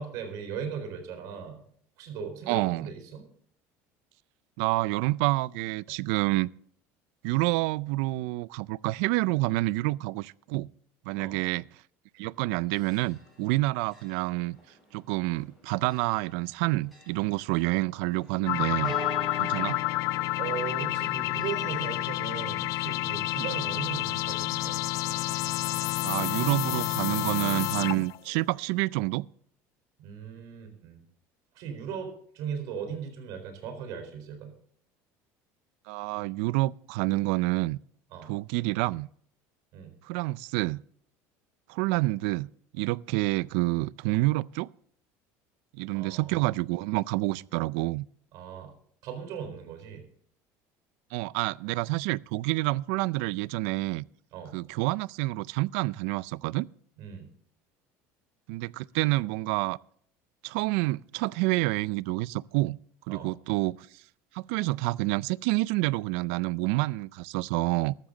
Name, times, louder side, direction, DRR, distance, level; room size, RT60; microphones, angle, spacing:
voice 1, 0.0-1.6 2.0-3.2 11.1-11.4 20.4-24.8 30.0-31.0 31.5-34.5 38.1-38.3 39.7-39.9 45.9-46.6 48.3-48.7 49.0-50.1 54.3-54.5 57.0-57.3 63.1-63.3, right 7 dB, 60° right, 4.2 m, -38 dB
voice 2, 2.5-2.9 4.6-6.5 7.2-10.7 11.1-11.6 12.2-14.6 14.9-18.9 19.4-19.8 26.0-29.3 35.9-37.8 38.2-39.1 40.0-40.8 41.7-44.7 45.7-48.1 51.1-54.0 54.5-56.7 58.5-59.8 60.4-62.8 63.1-64.0 64.3-67.9, right 21 dB, 80° right, 0.4 m, -28 dB
Church bell, 12.3-27.4, left 1 dB, ahead, 7.5 m, -47 dB
sound 1, 18.5-28.2, left 17 dB, 55° left, 0.5 m, -29 dB
14.5 x 12.5 x 3.9 m
cardioid pair, 145°, 7 cm